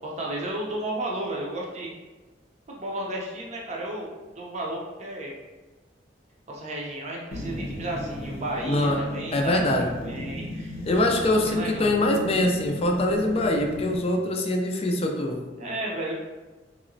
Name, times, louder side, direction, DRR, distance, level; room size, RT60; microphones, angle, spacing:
voice 1, 0.0-1.9 2.7-4.1 4.4-5.3 6.5-10.8 11.2-11.9 15.6-16.1, right 1 dB, 40° right, -3 dB, 0.6 m, -33 dB
sound 1, 7.3-14.1, left 1 dB, 55° left, 0.7 m, -36 dB
voice 2, 9.3-9.9 10.9-15.4, left 1 dB, 35° left, 2 dB, 0.4 m, -23 dB
3.0 x 2.9 x 2.6 m, 1.2 s
head